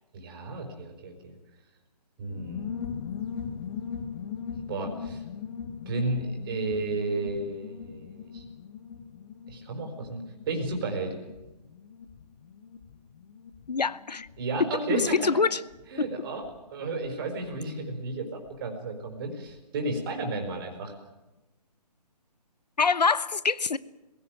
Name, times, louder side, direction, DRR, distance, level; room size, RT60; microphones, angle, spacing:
voice 1, 0.1-1.4 2.2-2.7 4.7-5.2 5.8-8.4 9.5-11.1 14.4-15.3 15.9-16.4 16.7-20.9, right 2 dB, 35° right, 4.8 m, -33 dB
sound 1, 2.3-18.6 18.8-18.9 19.2-19.6, left 7 dB, 35° left, 1.5 m, -41 dB
voice 2, 13.7-14.3 14.9-15.6 16.0-16.1 22.8-23.8, left 4 dB, 75° left, 1.0 m, -25 dB
21.0 x 17.0 x 9.1 m
figure-of-eight pair, 145°, 21 cm